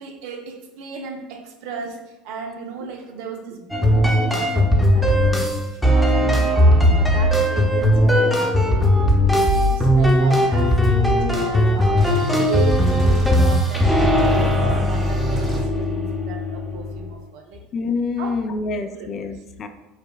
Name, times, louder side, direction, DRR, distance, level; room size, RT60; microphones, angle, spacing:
voice 1, 0.0-5.5 5.8-9.0 9.4-17.6 18.2-19.4, right 6 dB, 65° right, 4 dB, 0.5 m, -34 dB
sound 1, 3.7-17.1, equal, ahead, 0.7 m, -18 dB
sound 2, 12.0-15.6, equal, 25° right, 1.0 m, -29 dB
voice 2, 17.7-19.7, left 4 dB, 45° left, 8 dB, 0.3 m, -26 dB
4.9 x 2.1 x 2.3 m, 1.0 s
hypercardioid pair, 75°, 0 cm